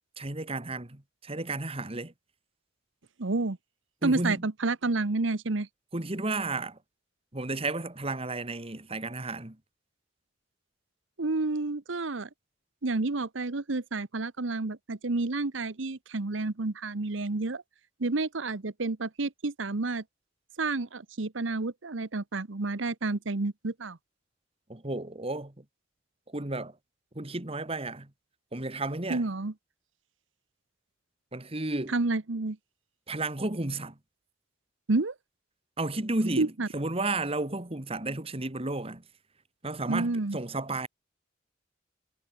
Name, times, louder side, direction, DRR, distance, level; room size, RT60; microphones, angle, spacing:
voice 1, 0.2-2.1 4.0-4.4 5.9-6.8 7.3-9.6 24.7-25.6 26.3-26.8 27.2-28.1 28.5-29.3 31.3-32.0 33.1-34.0 35.8-39.0 39.6-40.9, right 2 dB, 30° right, 1.9 m, -33 dB
voice 2, 3.2-3.6 4.0-5.7 11.2-12.3 12.8-17.6 18.0-20.0 20.6-24.0 29.1-29.5 31.9-32.6 34.9-35.1 36.4-36.7 39.9-40.4, right 3 dB, 75° right, 1.0 m, -30 dB
head